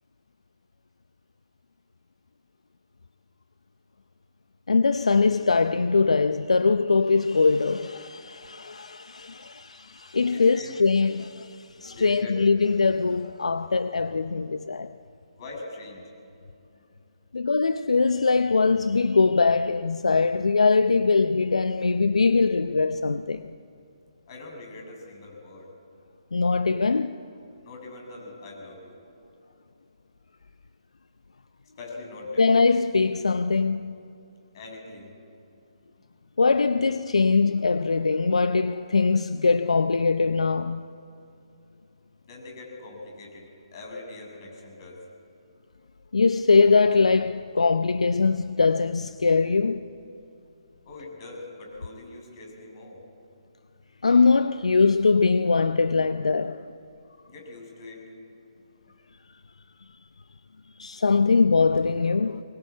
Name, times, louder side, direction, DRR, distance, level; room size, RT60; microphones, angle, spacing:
voice 1, 4.7-14.9 17.3-23.6 26.3-27.2 32.4-34.0 36.4-40.8 46.1-49.8 54.0-56.6 60.8-62.4, left 4 dB, 80° left, 0.7 m, -22 dB
voice 2, 10.3-10.7 11.8-12.4 15.3-16.0 16.7-16.8 24.3-25.7 27.6-29.0 31.8-32.5 34.5-35.1 42.2-45.0 50.8-53.0 57.3-58.0, left 2 dB, 45° left, 7.6 m, -42 dB
23.0 x 20.5 x 8.5 m
figure-of-eight pair, 140°, 3 cm